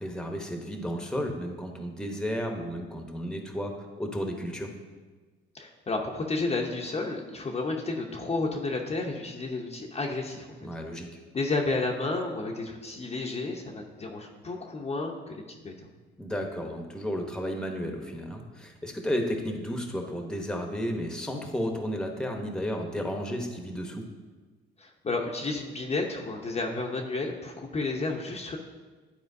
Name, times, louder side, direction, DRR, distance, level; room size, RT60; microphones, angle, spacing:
voice 1, 0.0-4.7 10.6-11.1 16.2-24.0, equal, 5° left, 3 dB, 0.9 m, -33 dB
voice 2, 5.5-10.5 11.3-15.7 24.8-28.6, left 3 dB, 35° left, 0 dB, 0.7 m, -31 dB
11.0 x 4.3 x 2.7 m, 1.3 s
cardioid pair, 90°, 20 cm